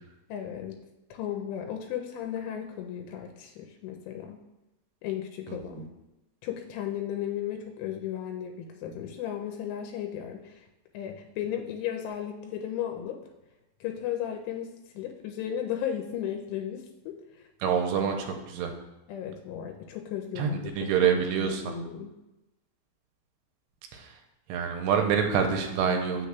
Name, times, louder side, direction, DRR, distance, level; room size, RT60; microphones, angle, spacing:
voice 1, 0.3-0.8 1.1-4.4 5.0-5.9 6.4-10.7 10.9-13.2 13.8-17.8 19.1-22.1, left 10 dB, 90° left, 3 dB, 2.7 m, -35 dB
voice 2, 5.5-5.9 17.6-18.7 20.4-21.7 23.9-24.1 24.5-26.3, right 7 dB, 90° right, 4 dB, 2.7 m, -27 dB
7.8 x 6.1 x 2.3 m, 0.98 s
omnidirectional pair, 4.8 m